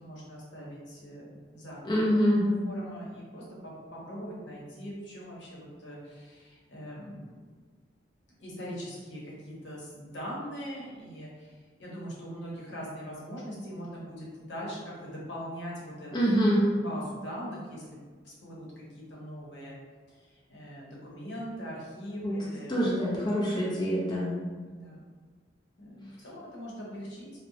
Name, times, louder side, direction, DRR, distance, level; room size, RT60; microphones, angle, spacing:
voice 1, 0.0-1.8 2.1-2.2 2.6-7.3 8.4-16.1 16.8-18.0 18.2-19.7 20.1-22.7 24.6-25.0 25.8-27.4, equal, 85° left, -5 dB, 0.8 m, -41 dB
voice 2, 1.8-2.5 16.1-16.7 22.2-22.4 22.7-24.3, equal, 25° left, -6 dB, 0.5 m, -25 dB
2.7 x 2.0 x 2.6 m, 1.5 s
head